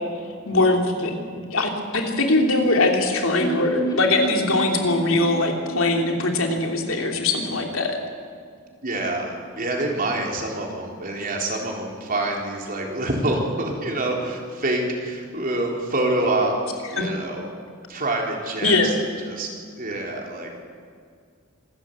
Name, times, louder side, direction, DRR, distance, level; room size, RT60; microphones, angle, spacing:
voice 1, 0.4-8.0 17.0-17.1 18.6-19.0, left 2 dB, 80° left, 2 dB, 3.0 m, -21 dB
sound 1, 3.4-7.3 7.5-7.6 7.9-8.0, right 3 dB, 20° left, 3.1 m, -32 dB
voice 2, 8.8-16.5 16.9-17.4 17.9-18.9 19.2-19.5 19.8-20.5, right 2 dB, 45° right, 0 dB, 4.0 m, -26 dB
26.0 x 13.5 x 8.3 m, 2.1 s
head